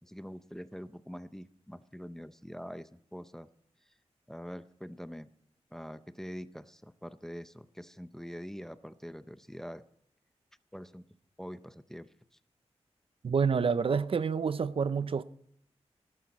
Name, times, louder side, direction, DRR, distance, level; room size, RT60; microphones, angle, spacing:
voice 1, 0.0-3.5 4.3-5.3 5.7-9.8 10.7-11.0 11.4-12.1, equal, 5° left, 0.5 m, -44 dB
voice 2, 13.2-15.2, right 6 dB, 55° right, 0.5 m, -28 dB
18.5 x 11.5 x 4.1 m
wide cardioid pair, 120°, 11 cm